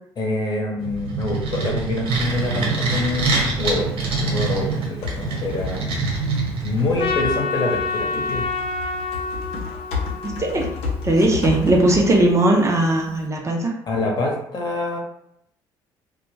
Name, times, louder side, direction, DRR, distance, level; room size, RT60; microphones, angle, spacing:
voice 1, 0.2-6.0 6.6-8.4 13.9-15.0, left 2 dB, 45° left, -1 dB, 0.9 m, -26 dB
sound 1, 0.8-7.1, right 3 dB, 70° right, 1.0 m, -25 dB
Typing, 2.2-13.3, left 5 dB, 80° left, 0.7 m, -34 dB
Trumpet, 7.0-11.4, left 3 dB, 60° left, 0.4 m, -28 dB
voice 2, 10.2-10.7 11.0-13.7, right 1 dB, 30° right, 0 dB, 0.6 m, -18 dB
2.2 x 2.2 x 3.2 m, 0.75 s
supercardioid pair, 70°, 10 cm